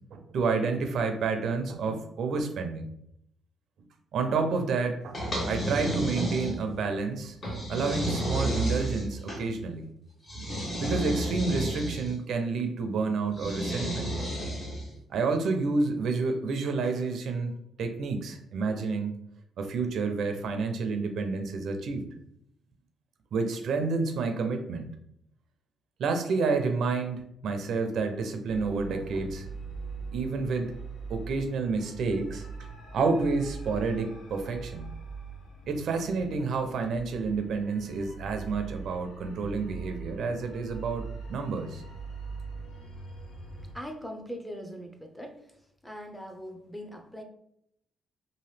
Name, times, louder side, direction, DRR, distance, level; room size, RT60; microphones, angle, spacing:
voice 1, 0.1-2.9 4.1-7.4 7.7-9.8 10.8-14.1 15.1-17.5 17.8-19.1 19.6-22.1 23.3-24.9 26.0-29.5 30.1-30.7 31.1-32.5 32.9-34.9 35.7-41.0 41.3-41.8, right 4 dB, 70° right, 6 dB, 0.5 m, -29 dB
sound 1, 5.1-6.8 7.4-9.4 10.3-12.1 13.3-14.9, right 1 dB, 40° left, 1.1 m, -31 dB
sound 2, 28.5-43.7, right 4 dB, 75° left, 0.9 m, -42 dB
voice 2, 43.7-45.4 45.8-47.2, equal, 5° left, 4 dB, 0.6 m, -41 dB
2.9 x 2.6 x 3.2 m, 0.74 s
cardioid pair, 90°, 0 cm